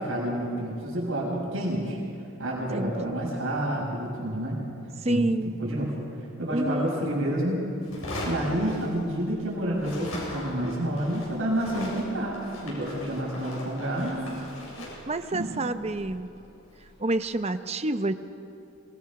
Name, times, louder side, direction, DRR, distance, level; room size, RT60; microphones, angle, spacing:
voice 1, 0.0-2.0 2.4-4.6 5.1-5.9 6.4-7.6 8.2-14.2 15.3-15.7, right 1 dB, 70° right, -3 dB, 6.0 m, -29 dB
voice 2, 5.0-5.5 6.5-7.0 14.0-16.3 17.0-18.1, right 2 dB, 30° right, 10 dB, 0.7 m, -29 dB
sound 1, 7.8-9.4 9.7-16.9, left 1 dB, 75° left, 7.2 m, -39 dB
26.5 x 20.0 x 6.0 m, 2.7 s
head